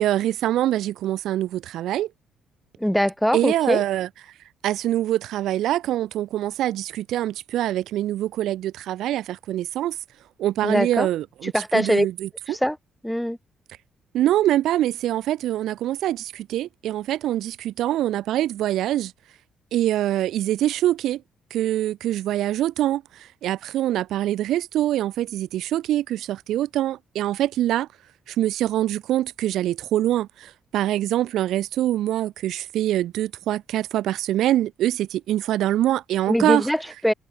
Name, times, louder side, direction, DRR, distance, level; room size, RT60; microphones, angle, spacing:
voice 1, 0.0-2.1 3.3-4.1 4.6-10.0 10.4-12.6 14.1-19.1 19.7-21.2 21.5-27.9 28.3-36.7, right 13 dB, 80° right, 1.5 m, -24 dB
voice 2, 2.8-3.8 10.6-11.1 11.5-12.1 12.5-12.8 13.0-13.4 36.3-37.1, equal, ahead, 3.4 m, -22 dB
cardioid pair, 90°, 0 cm